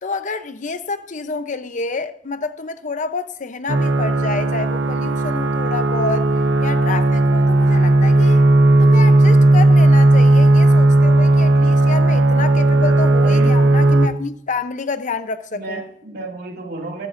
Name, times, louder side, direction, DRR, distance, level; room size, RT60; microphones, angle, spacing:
voice 1, 0.0-6.3 6.6-8.4 8.8-15.8, left 4 dB, 45° left, 0.8 m, -28 dB
sound 1, 3.7-14.1, right 2 dB, 80° right, 0.9 m, -14 dB
voice 2, 13.2-13.6 15.5-17.1, right 3 dB, 55° right, 2.5 m, -31 dB
14.0 x 12.5 x 2.6 m
head